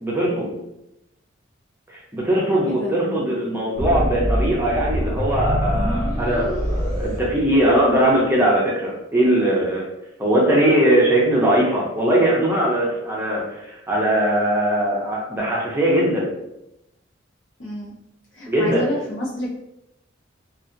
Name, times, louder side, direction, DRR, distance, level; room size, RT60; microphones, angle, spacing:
voice 1, 0.0-0.6 1.9-9.8 10.2-16.3 18.5-18.8, right 1 dB, 10° right, -4 dB, 0.5 m, -20 dB
voice 2, 2.6-3.3 17.6-17.9 18.3-19.5, left 1 dB, 70° left, -4 dB, 0.8 m, -29 dB
sound 1, 3.8-8.0, equal, 20° left, 1.2 m, -24 dB
2.7 x 2.4 x 2.5 m, 0.86 s
head